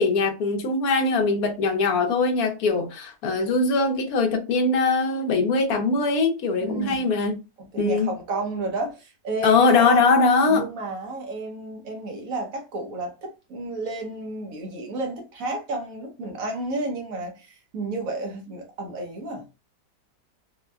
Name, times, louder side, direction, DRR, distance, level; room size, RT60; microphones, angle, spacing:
voice 1, 0.0-7.4 7.8-8.1 9.4-10.6, left 3 dB, 65° left, 1.1 m, -21 dB
voice 2, 6.6-7.1 7.6-10.1 10.5-19.5, right 2 dB, 55° right, 1.2 m, -32 dB
4.3 x 2.1 x 2.3 m
omnidirectional pair, 1.9 m